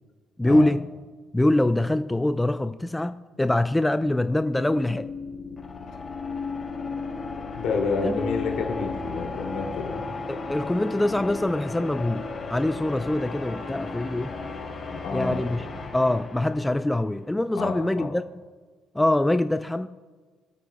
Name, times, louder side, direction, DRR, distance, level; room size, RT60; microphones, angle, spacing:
voice 1, 0.4-0.9 1.3-5.1 8.0-8.2 10.3-14.4 15.1-15.6 15.9-18.2 18.9-19.9, left 1 dB, 10° left, 0.5 m, -24 dB
sound 1, 4.0-17.1, left 4 dB, 40° left, 3.9 m, -35 dB
voice 2, 7.2-10.0 14.9-15.4 17.5-18.1, left 4 dB, 70° left, 2.5 m, -29 dB
23.5 x 8.4 x 2.2 m
hypercardioid pair, 55°, 0 cm